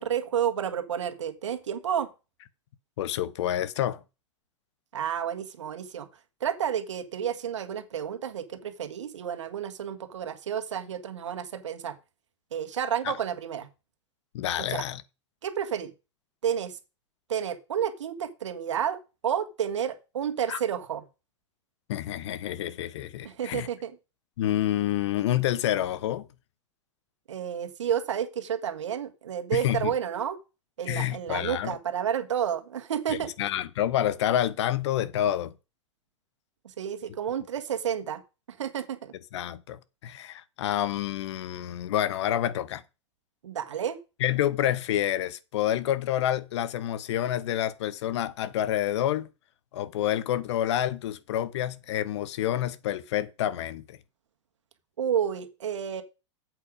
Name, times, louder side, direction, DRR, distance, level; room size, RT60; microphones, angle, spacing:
voice 1, 0.0-2.1 4.9-6.1 6.4-12.0 12.5-13.7 14.6-14.8 15.4-15.9 16.4-16.8 17.3-21.0 23.2-24.0 27.3-30.4 30.8-33.3 36.6-38.2 38.5-39.1 43.4-44.0 55.0-56.0, right 9 dB, 75° right, 1.7 m, -30 dB
voice 2, 3.0-4.0 13.0-13.2 14.3-15.0 20.5-20.6 21.9-23.7 24.4-26.3 29.5-29.9 30.9-31.8 33.1-35.5 39.3-42.8 44.2-49.3 49.7-54.0, left 12 dB, 65° left, 1.1 m, -28 dB
8.5 x 8.0 x 5.1 m
hypercardioid pair, 95°, 16 cm